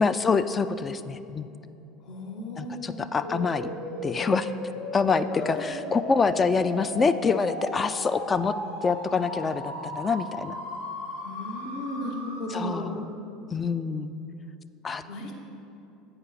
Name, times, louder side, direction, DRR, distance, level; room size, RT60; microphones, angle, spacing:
voice 1, 0.0-1.5 2.6-3.7 4.0-4.5 4.9-8.5 8.8-10.5 12.5-13.1 13.5-14.1 14.8-15.0, left 5 dB, 25° left, 11 dB, 0.3 m, -26 dB
voice 2, 2.0-3.1 5.3-5.7 11.2-12.9 15.0-15.3, left 1 dB, 50° left, 1 dB, 1.1 m, -35 dB
sound 1, 3.2-13.0, left 1 dB, 75° left, 1.2 m, -37 dB
8.0 x 5.0 x 5.7 m, 2.8 s
figure-of-eight pair, 70°, 0 cm